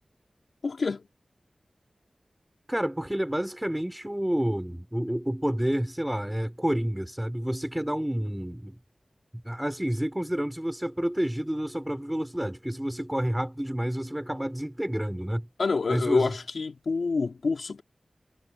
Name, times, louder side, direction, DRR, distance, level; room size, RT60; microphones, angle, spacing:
voice 1, 0.6-1.0 15.6-17.8, left 4 dB, 80° left, 2.8 m, -27 dB
voice 2, 2.7-8.7 9.4-15.5 15.9-16.3, equal, 10° right, 4.7 m, -29 dB
wide cardioid pair, 100°, 0 cm